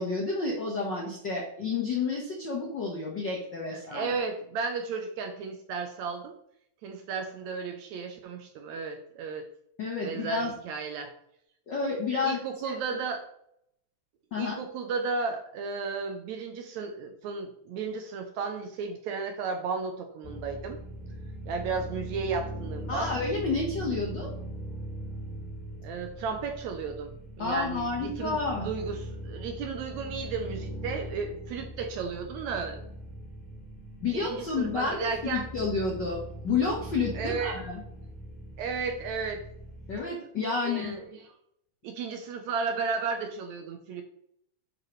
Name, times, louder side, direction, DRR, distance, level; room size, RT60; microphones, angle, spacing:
voice 1, 0.0-4.1 9.8-10.5 11.7-12.4 12.6-12.7 14.3-14.6 22.9-24.3 27.4-28.7 34.0-37.8 39.9-40.9, left 4 dB, 70° left, -1 dB, 1.0 m, -30 dB
voice 2, 3.7-6.3 6.8-9.5 10.0-11.1 12.2-13.2 14.3-20.8 21.5-23.1 25.8-32.8 34.1-35.5 37.1-37.6 38.6-39.4 40.6-41.2 41.8-44.0, right 5 dB, 75° right, 5 dB, 1.7 m, -34 dB
sound 1, 20.2-40.0, right 1 dB, 30° left, 1.5 m, -40 dB
10.5 x 5.2 x 3.2 m, 0.72 s
omnidirectional pair, 3.9 m